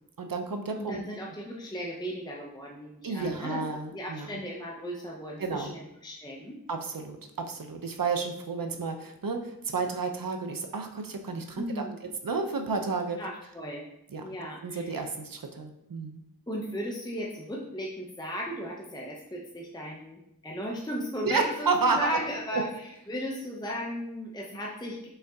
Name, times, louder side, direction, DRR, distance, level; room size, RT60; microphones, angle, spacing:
voice 1, 0.2-1.0 3.0-4.3 5.4-5.7 6.7-13.2 14.1-14.2 14.6-16.2 21.2-22.1 22.5-22.6, right 4 dB, 65° right, 4 dB, 0.6 m, -31 dB
voice 2, 0.7-3.6 3.9-6.6 11.6-12.0 13.2-13.9 14.2-15.1 16.5-25.1, equal, 10° left, -2 dB, 0.5 m, -36 dB
5.5 x 3.7 x 2.3 m, 0.82 s
wide cardioid pair, 40°, 37 cm